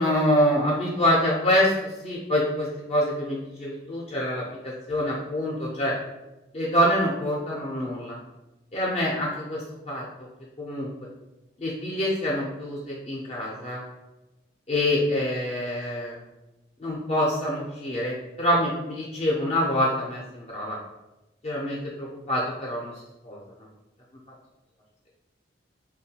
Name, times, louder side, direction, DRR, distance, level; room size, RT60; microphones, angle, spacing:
voice 1, 0.0-5.9 6.5-8.2 8.7-10.0 10.6-10.9 11.6-13.8 14.7-16.2 16.8-20.8 21.4-22.9 23.2-23.4, equal, 30° left, -5 dB, 0.4 m, -26 dB
3.5 x 2.2 x 2.7 m, 1.0 s
head